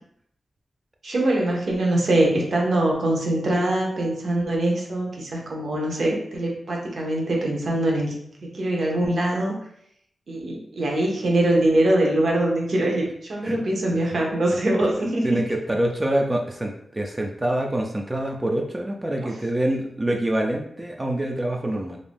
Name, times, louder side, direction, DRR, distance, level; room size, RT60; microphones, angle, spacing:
voice 1, 1.0-8.1 8.4-9.6 10.3-15.4, right 1 dB, 65° right, -1 dB, 0.7 m, -23 dB
voice 2, 15.2-22.0, right 1 dB, 20° right, 1 dB, 0.3 m, -25 dB
2.5 x 2.1 x 3.3 m, 0.72 s
wide cardioid pair, 95°, 0 cm